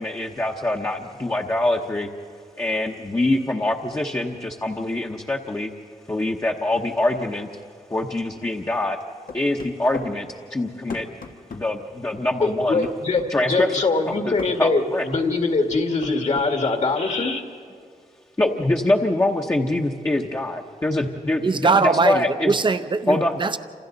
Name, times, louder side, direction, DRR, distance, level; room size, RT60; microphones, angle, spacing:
voice 1, 0.0-2.1 2.6-5.7 6.1-7.5 7.9-9.0 9.3-11.1 11.5-12.9 13.3-15.0 18.4-22.6 23.1-23.3, left 1 dB, 20° left, 0 dB, 0.9 m, -24 dB
sound 1, 9.3-10.1 10.9-11.7 12.8-13.3 14.4-14.6 15.7-16.5, left 5 dB, 85° left, 1.4 m, -36 dB
voice 2, 12.4-17.4, left 3 dB, 55° left, 3 dB, 1.9 m, -23 dB
voice 3, 21.4-23.6, right 4 dB, 35° right, 11 dB, 0.7 m, -21 dB
29.0 x 27.0 x 4.0 m, 2.2 s
wide cardioid pair, 150°, 14 cm